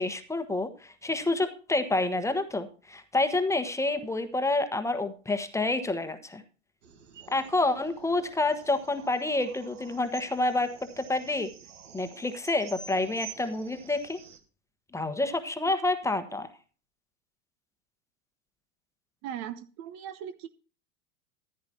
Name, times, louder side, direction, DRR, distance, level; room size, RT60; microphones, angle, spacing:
voice 1, 0.0-6.4 7.3-11.5 11.9-14.2 14.9-16.5, left 2 dB, 10° left, 8 dB, 1.2 m, -28 dB
sound 1, 6.8-14.4, right 7 dB, 70° right, 1.7 m, -49 dB
voice 2, 19.2-20.5, right 10 dB, 45° right, 12 dB, 0.8 m, -38 dB
14.5 x 10.5 x 2.8 m, 0.36 s
figure-of-eight pair, 90°, 38 cm